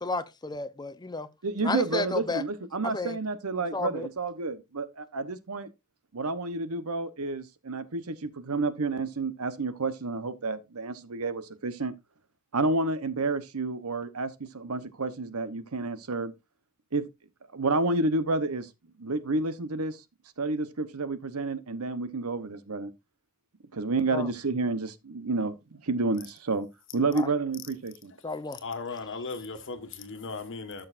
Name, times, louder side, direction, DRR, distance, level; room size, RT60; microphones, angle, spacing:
voice 1, 0.0-1.3 1.6-2.4 2.8-3.2 3.7-4.1 24.1-24.3 27.1-27.3 28.2-28.6, left 3 dB, 20° left, 0.8 m, -32 dB
voice 2, 1.4-5.7 6.1-11.9 12.5-16.3 16.9-17.1 17.5-18.7 19.0-20.0 20.4-22.9 23.7-26.7 26.9-28.1, right 3 dB, 85° right, 1.0 m, -30 dB
voice 3, 28.5-30.9, left 4 dB, 60° left, 1.6 m, -37 dB
13.5 x 6.6 x 2.6 m
head